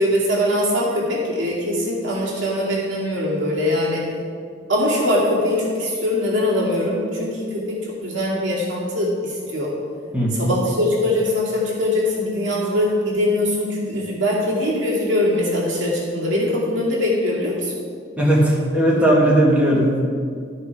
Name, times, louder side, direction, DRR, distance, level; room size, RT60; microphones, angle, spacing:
voice 1, 0.0-4.0 4.7-7.6 8.0-9.7 10.4-17.7, left 1 dB, 75° right, -5 dB, 2.3 m, -22 dB
voice 2, 10.1-10.5 18.2-20.0, right 1 dB, 5° right, -4 dB, 1.7 m, -17 dB
13.0 x 5.4 x 4.7 m, 2.2 s
head